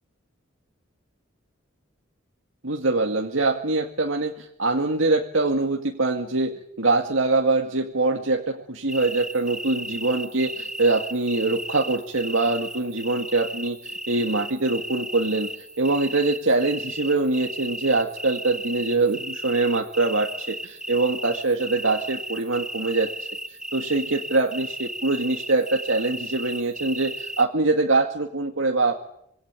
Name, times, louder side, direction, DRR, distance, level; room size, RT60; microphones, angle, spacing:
voice 1, 2.6-28.9, right 3 dB, 75° right, 2 dB, 2.2 m, -24 dB
sound 1, 8.9-27.4, right 1 dB, 5° right, 1.3 m, -35 dB
26.0 x 22.0 x 9.1 m, 0.75 s
head